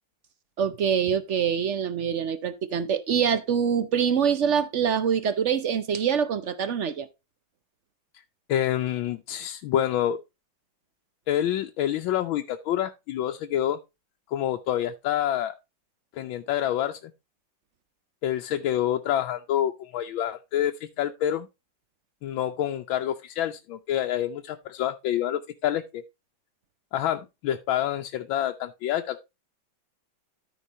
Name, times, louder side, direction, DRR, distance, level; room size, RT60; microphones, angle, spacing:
voice 1, 0.6-7.1, right 7 dB, 60° right, 0.7 m, -25 dB
voice 2, 8.5-10.2 11.3-13.8 14.3-15.5 16.2-17.1 18.2-21.5 22.2-26.0 26.9-29.2, left 11 dB, 85° left, 1.5 m, -27 dB
13.5 x 4.6 x 4.0 m
omnidirectional pair, 2.1 m